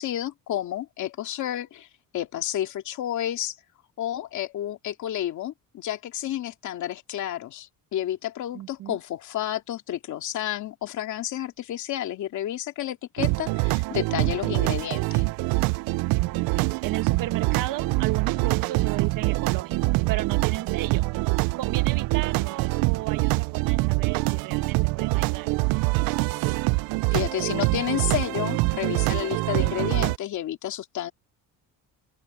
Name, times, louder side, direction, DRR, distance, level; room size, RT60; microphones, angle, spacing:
voice 1, 0.0-1.9 2.1-3.6 4.0-15.2 27.1-31.1, left 12 dB, 55° left, 2.5 m, -31 dB
voice 2, 8.5-9.0 16.2-25.6, right 14 dB, 65° right, 1.6 m, -35 dB
sound 1, 13.2-30.2, right 23 dB, 90° right, 0.5 m, -25 dB
open air
cardioid pair, 155°, 35 cm